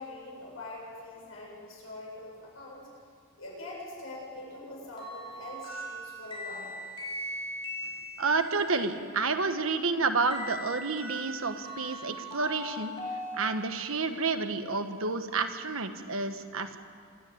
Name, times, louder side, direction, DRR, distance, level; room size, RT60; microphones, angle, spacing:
voice 1, 0.0-2.9 3.4-6.8, left 2 dB, 75° left, -4 dB, 7.9 m, -43 dB
sound 1, 5.0-8.7 10.3-14.1, equal, 25° left, 5.3 m, -40 dB
voice 2, 8.2-12.9 13.4-16.8, right 4 dB, 80° right, 8 dB, 1.4 m, -30 dB
26.0 x 13.0 x 8.7 m, 2.2 s
head